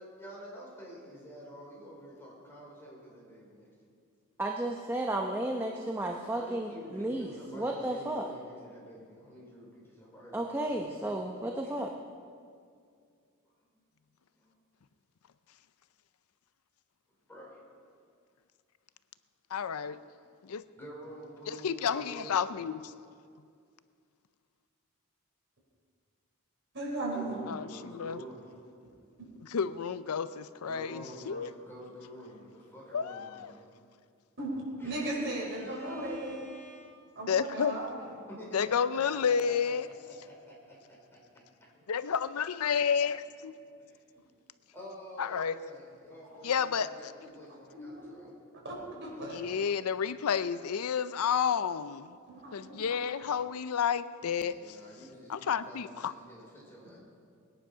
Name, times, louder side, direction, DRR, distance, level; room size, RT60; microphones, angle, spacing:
voice 1, 0.0-3.7 6.3-10.7 11.0-11.1 11.6-11.7 14.3-14.5 17.3-17.6 20.7-22.4 27.1-28.5 30.6-33.6 34.8-37.0 38.3-40.8 41.3-41.5 41.7-41.8 43.8-43.9 44.7-48.4 54.4-57.0, equal, 10° left, -5 dB, 4.5 m, -49 dB
voice 2, 4.4-8.3 10.3-11.9, right 1 dB, 10° right, 1 dB, 0.8 m, -33 dB
voice 3, 19.5-20.0 20.4-20.6 21.5-22.9 27.5-28.2 29.5-31.5 32.9-33.5 37.3-37.7 38.5-39.9 41.9-43.5 45.2-45.5 46.4-47.1 49.3-52.1 52.5-54.8 55.3-56.1, left 7 dB, 85° left, 14 dB, 0.5 m, -31 dB
voice 4, 26.7-27.4 34.4-34.5 34.8-36.5 37.1-38.1 46.2-46.4 47.7-48.3 48.6-49.5 52.3-53.0 56.8-57.0, right 2 dB, 55° right, -3 dB, 4.6 m, -37 dB
20.5 x 10.0 x 5.6 m, 2.2 s
head